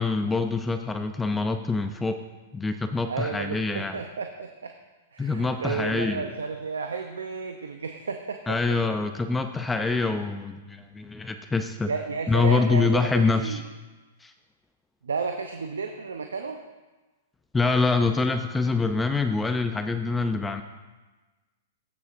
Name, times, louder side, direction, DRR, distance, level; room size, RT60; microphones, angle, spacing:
voice 1, 0.0-2.2 2.5-4.0 5.2-6.3 8.5-11.9 12.3-13.6 14.2-14.3 17.5-20.6, left 4 dB, 10° left, 7 dB, 0.5 m, -25 dB
voice 2, 3.1-4.7 5.1-8.6 11.9-13.6 15.0-16.6, right 5 dB, 90° right, 5 dB, 0.6 m, -32 dB
15.0 x 6.9 x 2.6 m, 1.2 s
hypercardioid pair, 120°, 0 cm